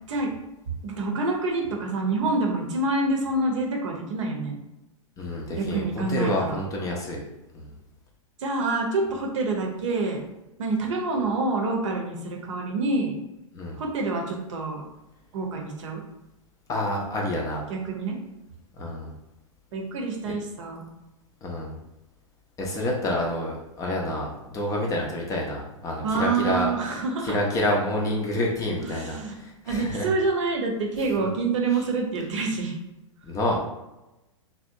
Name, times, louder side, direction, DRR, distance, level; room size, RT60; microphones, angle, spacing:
voice 1, 0.8-4.6 5.6-6.6 8.4-10.2 10.6-13.2 13.8-14.8 15.3-16.0 17.7-18.2 19.7-20.8 26.0-27.4 28.8-29.3 29.6-32.7, right 3 dB, 65° right, 1 dB, 0.7 m, -27 dB
voice 2, 5.2-7.2 7.5-7.7 13.5-13.8 16.7-17.6 18.8-19.1 21.4-21.8 22.6-30.1 31.2-31.3 33.2-33.7, left 1 dB, 20° left, -1 dB, 0.5 m, -28 dB
2.7 x 2.1 x 2.6 m, 0.96 s
hypercardioid pair, 110°, 17 cm